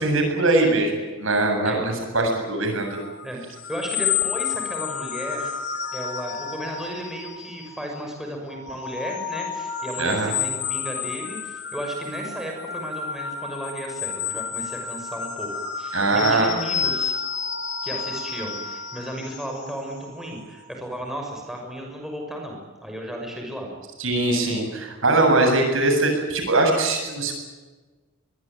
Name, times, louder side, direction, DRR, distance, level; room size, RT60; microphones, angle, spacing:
voice 1, 0.0-3.0 10.0-10.3 15.9-16.5 24.0-27.3, right 2 dB, 65° right, 3 dB, 7.8 m, -21 dB
sound 1, 2.7-7.9 8.4-20.7, left 7 dB, 55° left, 3.4 m, -31 dB
voice 2, 3.7-5.5 5.9-17.1 17.8-23.8, right 1 dB, ahead, 0 dB, 6.2 m, -34 dB
24.0 x 23.0 x 9.3 m, 1.3 s
head